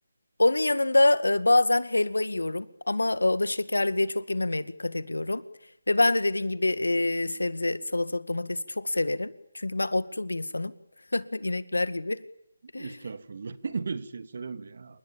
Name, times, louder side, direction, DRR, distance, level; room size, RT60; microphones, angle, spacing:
voice 1, 0.4-5.4 5.9-10.7 11.1-12.2 12.7-13.0, left 2 dB, 85° left, 15 dB, 2.1 m, -26 dB
voice 2, 12.8-15.0, right 4 dB, 55° right, 12 dB, 2.6 m, -36 dB
29.0 x 26.5 x 7.3 m, 0.74 s
figure-of-eight pair, 155°, 0 cm